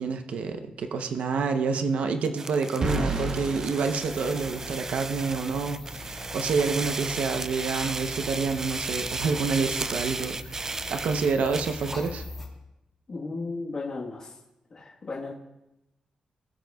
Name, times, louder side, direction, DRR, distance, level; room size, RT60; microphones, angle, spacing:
voice 1, 0.0-12.2, right 4 dB, 75° right, 7 dB, 0.8 m, -28 dB
sound 1, 2.2-12.1, right 3 dB, 25° right, 0.3 m, -35 dB
sound 2, 2.8-4.9, right 2 dB, 40° right, 1.0 m, -31 dB
sound 3, 4.1-12.5, left 2 dB, 10° left, 2.5 m, -42 dB
voice 2, 13.1-14.3 14.7-15.3, left 3 dB, 40° left, -6 dB, 1.3 m, -35 dB
19.0 x 7.7 x 2.3 m, 0.91 s
wide cardioid pair, 170°, 2 cm